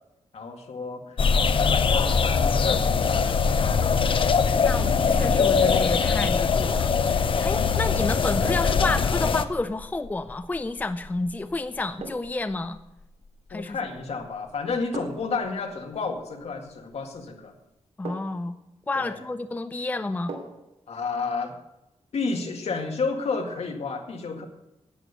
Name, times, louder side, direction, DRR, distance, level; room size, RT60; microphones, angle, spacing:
voice 1, 0.3-3.9 7.3-7.5 13.5-17.5 19.0-19.2 20.9-21.6 22.1-24.4, left 4 dB, 70° left, 3 dB, 2.0 m, -31 dB
sound 1, 1.2-9.4, left 5 dB, 50° left, 0.7 m, -22 dB
voice 2, 4.6-12.8 13.5-13.8 18.0-18.6 18.9-20.3, left 2 dB, 15° left, 11 dB, 0.4 m, -30 dB
sound 2, 8.4-8.9 10.9-11.1 12.0-12.5 13.8-14.2 14.9-15.4 17.0-17.2 18.0-18.5 20.3-20.7 21.1-21.2, right 3 dB, 80° right, 2.4 m, -40 dB
sound 3, 9.5-15.7, left 2 dB, 90° left, 1.6 m, -37 dB
11.0 x 8.9 x 8.1 m, 0.91 s
wide cardioid pair, 150°, 11 cm